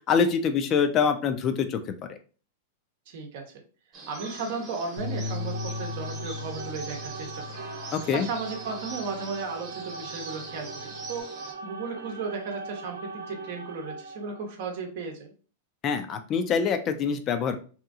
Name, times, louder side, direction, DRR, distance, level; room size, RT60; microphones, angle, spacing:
voice 1, 0.1-1.8 2.1-2.2 7.9-8.3 15.8-17.6, left 6 dB, 35° left, 8 dB, 0.4 m, -25 dB
voice 2, 3.1-3.4 4.1-7.4 8.1-11.2 11.6-15.3, right 4 dB, 60° right, 3 dB, 0.8 m, -35 dB
sound 1, 3.9-11.5, right 3 dB, 40° right, 1.0 m, -43 dB
Bass guitar, 5.0-9.4 9.8-11.2, left 4 dB, 80° left, 0.7 m, -38 dB
sound 2, 5.1-14.6, right 4 dB, 85° right, 0.3 m, -41 dB
2.8 x 2.5 x 2.4 m, 0.38 s
hypercardioid pair, 105°, 0 cm